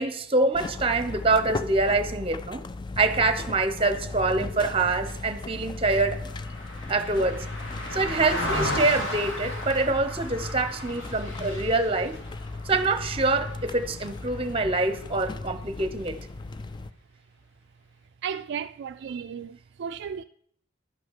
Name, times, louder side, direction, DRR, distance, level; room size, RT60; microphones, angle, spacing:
voice 1, 0.0-2.6 3.0-6.2 6.9-7.4 7.9-12.2 12.6-16.2, right 3 dB, 30° right, 0.8 m, -25 dB
sound 1, 0.5-16.9, left 3 dB, 25° left, 0.3 m, -37 dB
Car passing by, 4.9-14.4 14.8-15.0, left 1 dB, 85° left, 3.2 m, -35 dB
voice 2, 18.2-20.2, right 7 dB, 60° right, 0.3 m, -34 dB
11.0 x 5.7 x 7.4 m
head